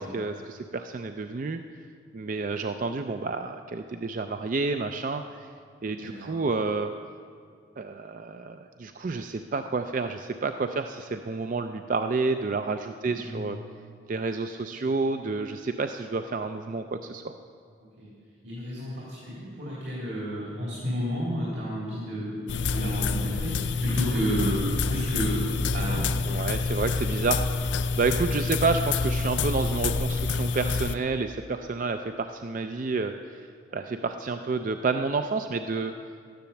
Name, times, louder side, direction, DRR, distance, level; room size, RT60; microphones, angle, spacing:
voice 1, 0.0-1.6 2.1-5.5 5.8-6.9 7.8-13.6 14.1-17.3 26.3-27.6 28.0-33.5 33.7-36.0, right 4 dB, 45° right, 7 dB, 0.4 m, -29 dB
voice 2, 13.0-13.4 18.0-18.1 18.4-26.1, equal, 65° right, -7 dB, 3.1 m, -31 dB
sound 1, 22.5-30.9, left 4 dB, 70° left, 0.4 m, -27 dB
12.5 x 10.5 x 7.0 m, 2.2 s
head